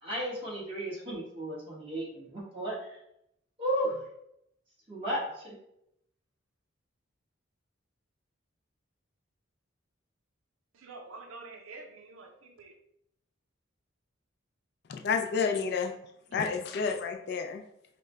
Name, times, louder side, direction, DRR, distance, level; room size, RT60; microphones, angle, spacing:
voice 1, 0.0-3.0 3.6-4.0 4.9-5.5, right 1 dB, 25° right, -6 dB, 1.4 m, -34 dB
voice 2, 10.7-12.7, right 3 dB, 85° right, 5 dB, 0.5 m, -47 dB
voice 3, 14.9-15.9 16.3-17.6, left 5 dB, 50° left, 5 dB, 0.3 m, -30 dB
4.9 x 2.1 x 3.2 m, 0.77 s
head